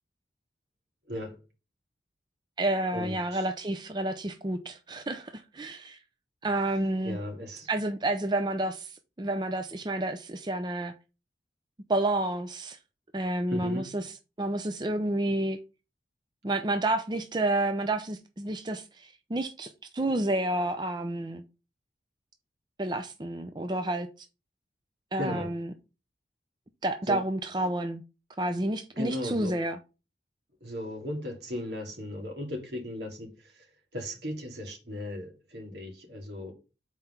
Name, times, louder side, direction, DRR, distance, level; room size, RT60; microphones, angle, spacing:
voice 1, 1.1-1.4 2.9-3.5 7.0-7.7 13.5-14.0 25.2-25.6 27.1-27.2 28.9-29.6 30.6-36.5, left 1 dB, 80° right, 2.4 m, -37 dB
voice 2, 2.6-6.0 6.4-7.2 7.7-8.9 9.2-10.9 11.9-12.8 13.1-14.0 14.4-15.6 16.4-21.4 22.8-24.1 25.1-25.7 26.8-28.0 28.4-29.8, right 1 dB, 25° right, 0.5 m, -30 dB
5.6 x 4.5 x 5.6 m
head